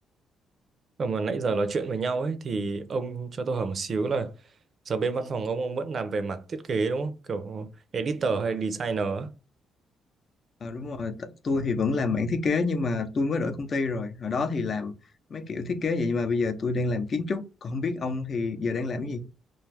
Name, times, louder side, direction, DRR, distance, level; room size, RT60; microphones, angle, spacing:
voice 1, 1.0-4.3 4.9-9.3, right 4 dB, 50° right, 0.5 m, -29 dB
voice 2, 10.6-14.9 15.3-19.2, left 3 dB, 45° left, 0.6 m, -28 dB
2.5 x 2.4 x 3.3 m
cardioid pair, 90°, 0 cm